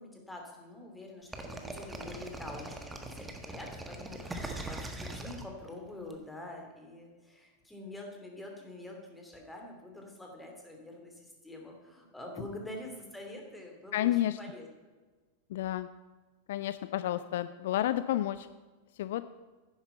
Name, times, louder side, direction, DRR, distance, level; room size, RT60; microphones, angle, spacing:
voice 1, 0.0-14.1 14.4-14.7, left 1 dB, 5° left, 1 dB, 2.9 m, -46 dB
sound 1, 1.3-6.1, right 2 dB, 10° right, 1.4 m, -41 dB
voice 2, 13.9-14.4 15.5-15.9 16.5-18.5 18.9-19.2, left 13 dB, 55° left, 14 dB, 0.4 m, -30 dB
10.5 x 10.0 x 5.7 m, 1.3 s
figure-of-eight pair, 90°, 0 cm